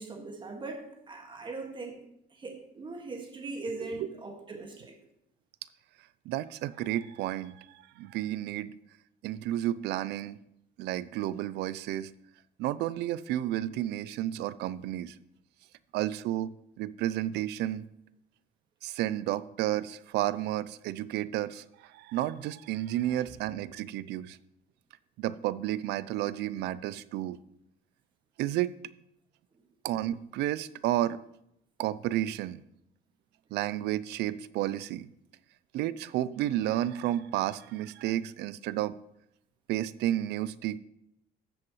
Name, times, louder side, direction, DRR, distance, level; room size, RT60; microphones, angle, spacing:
voice 1, 0.0-2.0 2.4-5.0, right 3 dB, 30° right, 3 dB, 1.8 m, -40 dB
voice 2, 3.8-4.1 6.3-8.7 9.2-10.4 10.8-12.1 12.6-15.2 15.9-17.9 18.8-24.4 25.2-27.4 28.4-28.8 29.8-31.2 31.8-32.6 33.5-35.1 35.7-38.9 39.7-40.8, right 13 dB, 80° right, 18 dB, 0.4 m, -31 dB
13.5 x 7.6 x 3.1 m, 0.79 s
cardioid pair, 110°, 17 cm